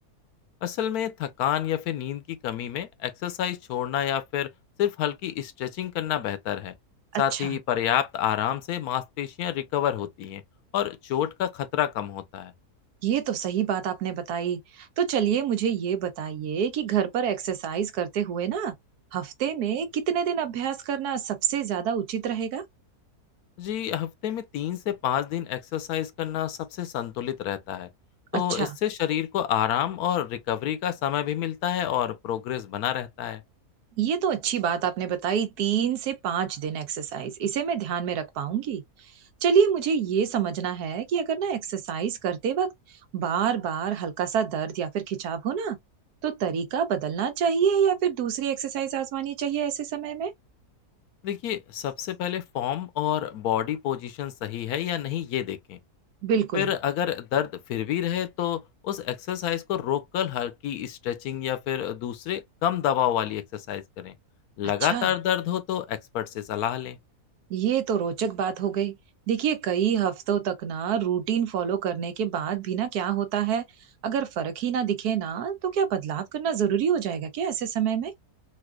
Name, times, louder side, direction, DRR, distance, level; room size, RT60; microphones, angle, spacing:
voice 1, 0.6-4.5 4.8-6.7 7.2-10.4 10.7-12.5 23.6-27.9 28.3-33.4 51.2-55.8 56.5-64.1 64.6-67.0, left 10 dB, 75° left, 1.1 m, -28 dB
voice 2, 7.1-7.6 13.0-18.7 19.1-22.6 28.3-28.7 34.0-38.8 39.4-42.7 43.1-45.8 46.2-50.3 56.2-56.7 64.8-65.1 67.5-69.0 69.3-73.6 74.0-78.1, right 8 dB, 85° right, 1.2 m, -27 dB
4.2 x 2.5 x 2.2 m
omnidirectional pair, 1.7 m